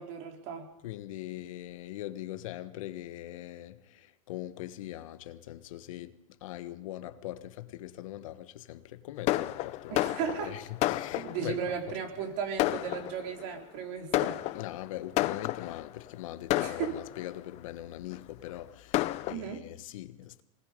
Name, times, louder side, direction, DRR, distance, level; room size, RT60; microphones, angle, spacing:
voice 1, 0.0-0.7 9.9-10.6 11.2-14.4 16.6-17.0 19.3-19.7, right 7 dB, 50° right, 4.2 m, -36 dB
voice 2, 0.8-11.7 14.5-20.4, left 14 dB, 75° left, 1.4 m, -41 dB
Fireworks, 9.3-11.6 12.2-12.3 12.6-13.5 14.1-15.9 16.5-17.4 18.1-18.2 18.5-18.6 18.9-19.3, left 17 dB, 40° left, 0.7 m, -31 dB
24.5 x 20.0 x 5.3 m
supercardioid pair, 140°, 17 cm